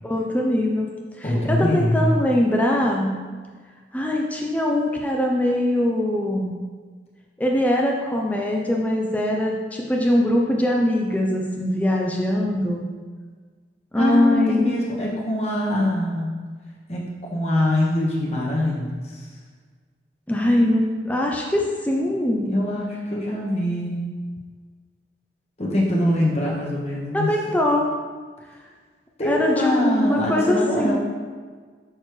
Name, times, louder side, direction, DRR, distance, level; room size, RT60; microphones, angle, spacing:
voice 1, 0.0-0.9 1.2-3.2 3.9-6.5 7.4-12.8 13.9-14.7 20.3-22.7 27.1-27.9 29.2-31.0, left 1 dB, 10° left, -1 dB, 0.5 m, -22 dB
voice 2, 1.2-2.1 13.9-16.3 16.9-19.3 22.5-24.1 25.6-27.3 29.2-31.0, left 1 dB, 35° left, -4 dB, 1.3 m, -23 dB
6.5 x 6.4 x 3.1 m, 1.5 s
head